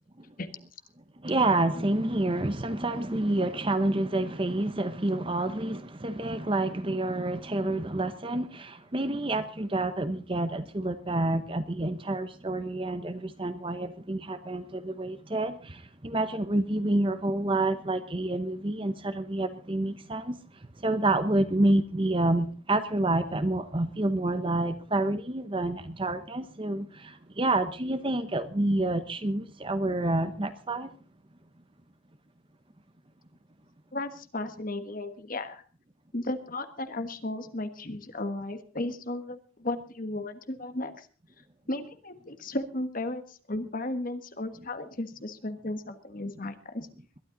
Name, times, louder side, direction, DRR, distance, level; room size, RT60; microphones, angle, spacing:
voice 1, 1.2-20.4 20.8-30.9, right 2 dB, 25° right, 11 dB, 0.8 m, -28 dB
voice 2, 33.9-35.6 36.1-41.1 41.7-46.9, left 2 dB, 40° left, 9 dB, 1.4 m, -35 dB
21.5 x 12.5 x 3.9 m, 0.40 s
head